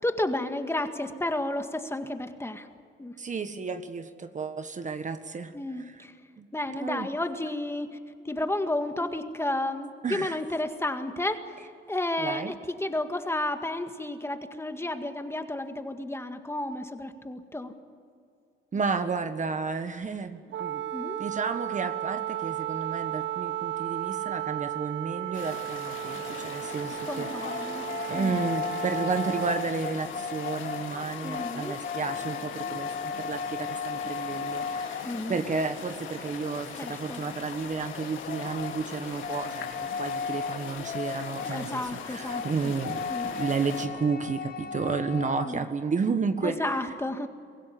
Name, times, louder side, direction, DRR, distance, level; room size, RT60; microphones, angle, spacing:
voice 1, 0.0-2.7 3.0-3.1 5.5-6.1 6.5-8.0 8.3-11.6 11.9-17.7 20.9-21.2 27.1-27.9 28.1-28.4 31.2-31.7 35.0-35.4 36.8-37.2 41.5-42.7 43.1-43.3 45.4-45.6 46.4-47.3, left 1 dB, 10° left, 7 dB, 1.9 m, -32 dB
voice 2, 3.2-6.1 6.4-7.1 10.0-10.4 12.2-12.5 18.7-20.8 21.2-27.7 28.1-46.9, right 5 dB, 40° right, 9 dB, 1.4 m, -32 dB
Wind instrument woodwind instrument, 20.5-29.7, right 12 dB, 65° right, 0.7 m, -34 dB
sound 1, 25.3-43.9, left 6 dB, 80° left, 3.3 m, -41 dB
sound 2, 26.9-35.6 37.9-45.7, left 6 dB, 50° left, 1.1 m, -36 dB
24.5 x 16.0 x 9.9 m, 2.3 s
cardioid pair, 90°, 20 cm